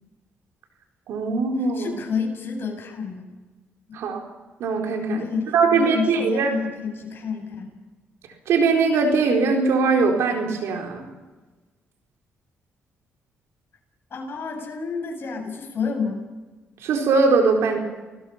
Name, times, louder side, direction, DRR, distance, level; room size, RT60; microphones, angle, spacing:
voice 1, 1.1-2.0 3.9-4.2 4.6-5.2 5.5-6.5 8.5-11.1 16.8-17.8, right 4 dB, 80° right, 2 dB, 4.2 m, -21 dB
voice 2, 1.6-3.3 5.1-7.8 14.1-16.2, left 5 dB, 55° left, 2 dB, 8.0 m, -29 dB
30.0 x 20.0 x 5.9 m, 1.2 s
cardioid pair, 80°, 5 cm